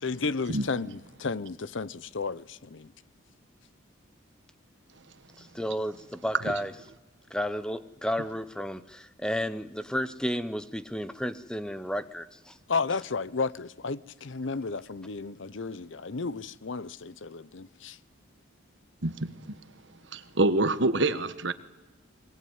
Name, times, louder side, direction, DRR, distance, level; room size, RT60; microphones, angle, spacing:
voice 1, 0.0-2.9 12.7-18.0, left 4 dB, 70° left, 0.8 m, -33 dB
voice 2, 5.4-6.7 7.3-12.6, equal, 5° left, 0.8 m, -32 dB
voice 3, 19.0-19.3 20.1-21.5, right 2 dB, 65° right, 1.4 m, -26 dB
22.5 x 21.5 x 9.5 m
head